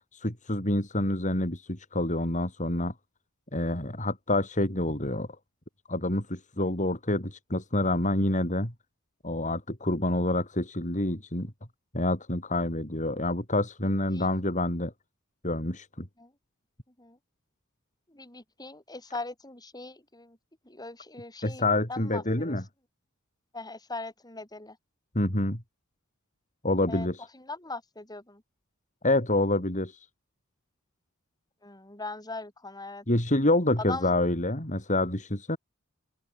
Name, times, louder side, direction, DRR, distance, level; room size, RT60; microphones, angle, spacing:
voice 1, 0.2-2.9 3.5-5.3 5.9-8.7 9.2-11.5 11.9-14.9 15.4-16.1 21.4-22.6 25.2-25.6 26.6-27.2 29.0-29.9 33.1-35.6, left 1 dB, 35° left, 5.3 m, -27 dB
voice 2, 18.1-20.4 20.6-22.6 23.5-24.8 26.9-27.1 27.3-28.4 31.6-33.0 33.8-34.1, left 3 dB, 20° left, 6.9 m, -40 dB
open air
head